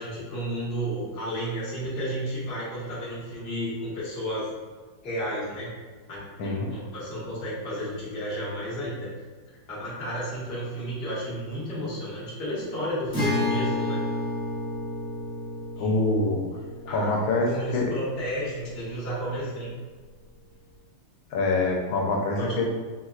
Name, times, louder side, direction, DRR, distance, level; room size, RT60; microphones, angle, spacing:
voice 1, 0.0-4.5 5.0-5.7 6.1-9.1 9.7-14.0 15.8-16.0 16.6-19.7 22.4-22.6, equal, 40° left, -9 dB, 1.1 m, -32 dB
Acoustic guitar, 13.1-18.6, left 1 dB, 5° left, 0.8 m, -31 dB
voice 2, 15.8-16.4 16.9-17.9 21.3-22.7, left 2 dB, 85° left, 0 dB, 1.4 m, -25 dB
4.4 x 2.1 x 2.3 m, 1.4 s
omnidirectional pair, 2.1 m